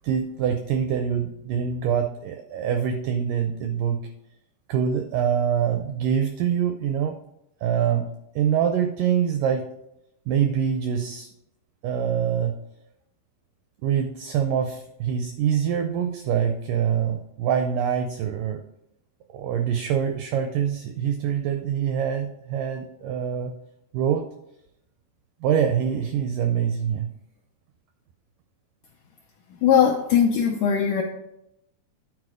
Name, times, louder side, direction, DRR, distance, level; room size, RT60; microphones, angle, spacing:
voice 1, 0.0-4.0 4.7-7.2 7.6-8.1 8.4-9.7 10.3-11.3 11.8-12.5 13.8-18.6 19.3-23.5 23.9-24.2 25.4-27.1, right 8 dB, 85° right, 6 dB, 1.8 m, -24 dB
voice 2, 29.6-31.0, left 8 dB, 80° left, 2 dB, 1.8 m, -19 dB
9.7 x 4.2 x 4.9 m, 0.82 s
omnidirectional pair, 4.4 m